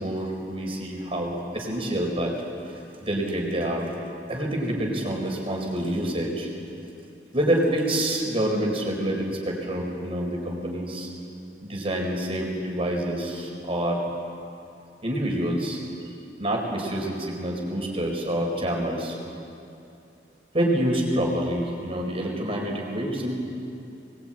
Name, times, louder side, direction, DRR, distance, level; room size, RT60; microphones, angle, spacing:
voice 1, 0.0-2.3 3.0-3.9 4.3-6.5 7.3-11.1 11.6-14.0 15.0-15.8 16.4-19.2 20.5-23.3, right 1 dB, 30° right, 0 dB, 4.5 m, -27 dB
23.5 x 20.5 x 8.9 m, 2.7 s
head